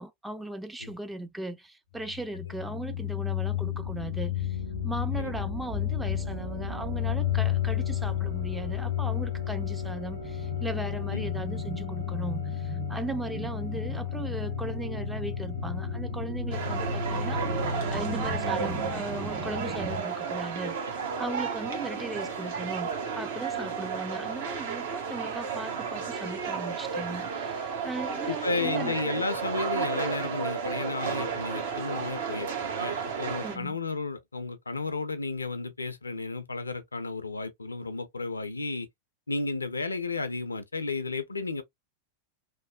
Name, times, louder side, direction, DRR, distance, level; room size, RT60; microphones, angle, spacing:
voice 1, 0.0-4.6 4.8-20.8 21.2-29.0 33.4-33.8, right 2 dB, 5° right, 0.4 m, -38 dB
sound 1, 2.0-18.7, left 11 dB, 80° right, 1.6 m, -33 dB
sound 2, 2.6-20.0, right 1 dB, 35° right, 1.5 m, -38 dB
sound 3, 16.5-33.6, right 6 dB, 55° right, 0.9 m, -33 dB
voice 2, 28.2-38.9 39.3-41.6, left 3 dB, 80° left, 0.4 m, -33 dB
3.0 x 2.0 x 2.2 m
figure-of-eight pair, 90°, 0 cm